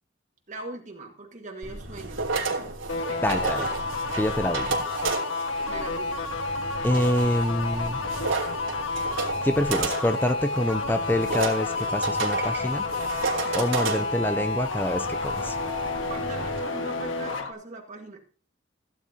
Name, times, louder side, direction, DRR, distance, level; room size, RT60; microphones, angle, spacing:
voice 1, 0.5-2.8 3.0-3.2 5.6-6.3 16.1-18.2, right 2 dB, 40° right, 1 dB, 1.8 m, -41 dB
sound 1, 1.6-16.6, right 4 dB, 90° right, 3.1 m, -32 dB
sound 2, 2.9-17.5, left 3 dB, 80° left, 1.5 m, -30 dB
voice 2, 3.2-3.7 4.2-4.8 6.8-8.0 9.4-12.9 13.5-15.5, left 1 dB, 10° left, 9 dB, 0.6 m, -26 dB
sound 3, 10.5-15.7, right 4 dB, 15° right, 1.8 m, -50 dB
16.0 x 10.5 x 2.8 m, 0.38 s
head